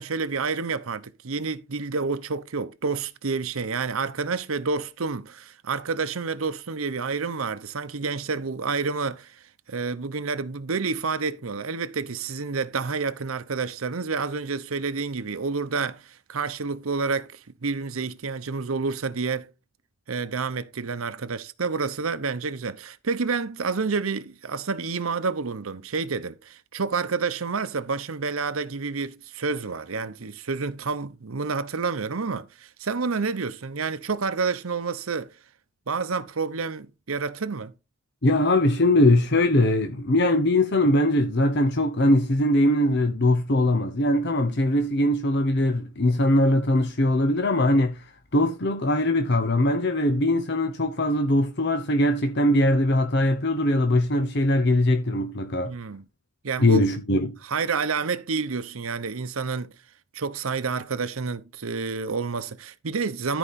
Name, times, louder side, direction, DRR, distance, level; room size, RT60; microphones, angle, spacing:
voice 1, 0.0-9.4 9.7-19.5 20.1-35.3 35.9-37.7 55.6-56.1 56.4-56.8 57.5-59.7 60.1-63.4, right 4 dB, 90° right, 0.8 m, -29 dB
voice 2, 38.2-48.0 48.3-55.7 56.6-57.4, left 1 dB, 55° left, 0.9 m, -21 dB
13.0 x 4.9 x 4.2 m
head